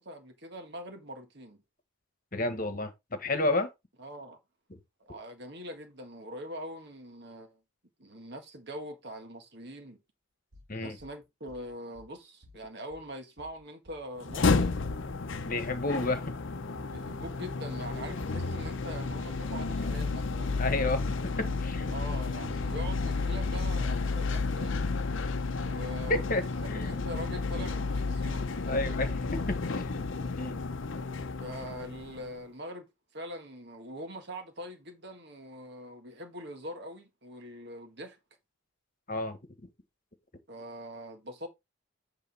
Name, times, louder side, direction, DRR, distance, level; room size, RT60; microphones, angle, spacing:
voice 1, 0.0-1.6 4.0-4.4 5.0-7.6 8.0-10.0 10.7-14.8 16.9-20.6 21.9-24.9 25.6-26.2 26.7-29.0 31.4-38.2 40.5-41.5, equal, 50° right, 1.7 m, -43 dB
voice 2, 2.3-3.7 10.7-11.0 15.4-16.3 20.6-21.1 21.6-21.8 26.1-26.4 26.7-27.0 28.7-29.4 29.7-29.9 30.4-30.6 39.1-39.4, left 2 dB, 40° left, 1.4 m, -30 dB
sound 1, 10.5-11.1 11.5-12.1 12.4-13.1 13.4-14.1 14.3-15.0 15.3-16.0 16.2-16.9 17.2-17.9 18.1-18.8 19.1-19.7 20.0-20.7 21.0-21.6 21.9-22.6 22.9-23.0 23.4-24.0 24.3-24.5 24.8-25.3, right 1 dB, 85° right, 2.0 m, -50 dB
sound 2, 14.2-32.3, left 3 dB, 60° left, 0.7 m, -32 dB
8.4 x 3.8 x 5.5 m
head